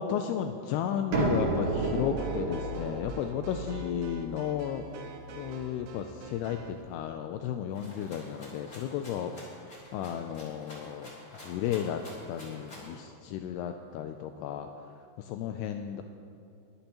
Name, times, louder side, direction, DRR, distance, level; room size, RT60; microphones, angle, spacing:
voice 1, 0.0-4.9 5.3-9.4 9.9-11.2 11.4-12.0 12.3-16.0, left 9 dB, 85° left, 6 dB, 2.3 m, -33 dB
sound 1, 1.1-6.7, right 3 dB, 55° right, 2.0 m, -33 dB
sound 2, 1.8-6.8, right 6 dB, 80° right, 3.3 m, -48 dB
Rattle (instrument), 7.7-13.0, left 1 dB, 25° left, 2.8 m, -49 dB
22.0 x 11.0 x 3.0 m, 2.5 s
omnidirectional pair, 5.2 m